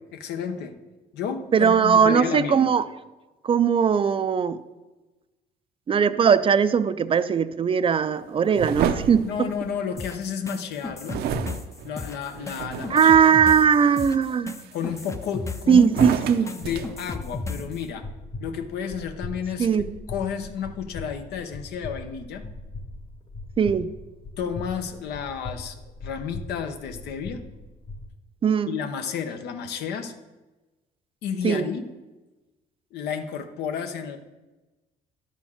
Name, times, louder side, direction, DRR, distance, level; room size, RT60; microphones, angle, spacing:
voice 1, 0.1-0.7 1.1-2.7 9.2-11.2 11.8-13.4 14.7-18.1 18.4-19.7 20.1-22.4 24.4-27.4 28.7-30.1 31.2-31.8 32.9-34.2, left 7 dB, 75° left, 7 dB, 1.0 m, -31 dB
voice 2, 1.5-2.8 3.4-4.6 5.9-9.3 12.9-14.6 15.7-16.5 19.6-19.9 23.6-23.9 28.4-28.7 31.4-31.7, right 7 dB, 30° right, 13 dB, 0.4 m, -19 dB
sound 1, 8.5-10.2 11.1-13.1 13.7-14.1 14.6-15.4 15.8-17.7, right 8 dB, 70° right, 0.7 m, -31 dB
sound 2, 10.0-17.8, left 4 dB, 15° left, 0.6 m, -35 dB
sound 3, 16.6-28.1, left 2 dB, 45° left, 1.7 m, -40 dB
10.5 x 4.4 x 7.2 m, 1.1 s
cardioid pair, 110°, 17 cm